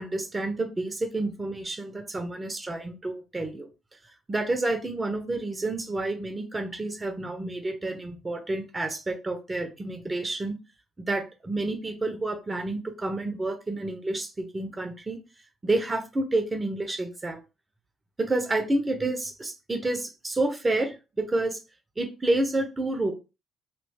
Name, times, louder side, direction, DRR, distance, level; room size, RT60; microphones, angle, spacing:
voice 1, 0.0-3.7 4.3-10.6 11.0-15.2 15.6-17.4 18.2-21.6 22.0-23.1, right 2 dB, 25° right, 4 dB, 0.8 m, -29 dB
3.1 x 2.7 x 3.5 m, 0.29 s
figure-of-eight pair, 45°, 0 cm